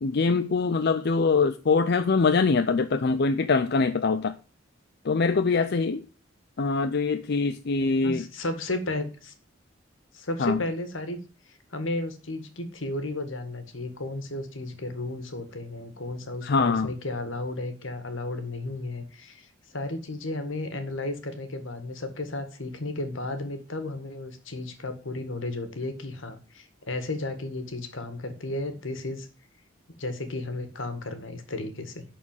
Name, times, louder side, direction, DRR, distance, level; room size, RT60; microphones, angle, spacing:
voice 1, 0.0-4.4 5.0-6.0 6.6-8.2 10.4-10.6 16.4-16.9, left 4 dB, 55° left, 0.5 m, -23 dB
voice 2, 8.0-9.3 10.1-11.2 11.5-29.3 30.0-32.0, left 2 dB, 85° left, 1.8 m, -33 dB
11.0 x 4.3 x 7.1 m
head